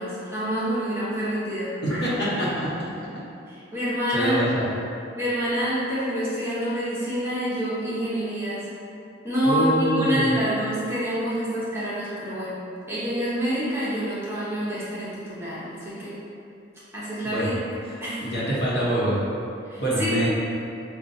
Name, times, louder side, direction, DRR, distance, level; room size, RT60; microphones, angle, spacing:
voice 1, 0.0-1.7 3.5-4.4 5.2-8.7 9.2-12.6 12.9-16.1 16.9-17.6 18.0-18.2 19.7-20.1, equal, 15° right, -10 dB, 0.8 m, -27 dB
voice 2, 1.8-2.7 4.1-4.6 9.4-10.3 17.2-17.5 18.2-19.2 19.8-20.3, right 1 dB, 60° left, -8 dB, 1.0 m, -25 dB
5.4 x 2.3 x 2.6 m, 2.7 s
head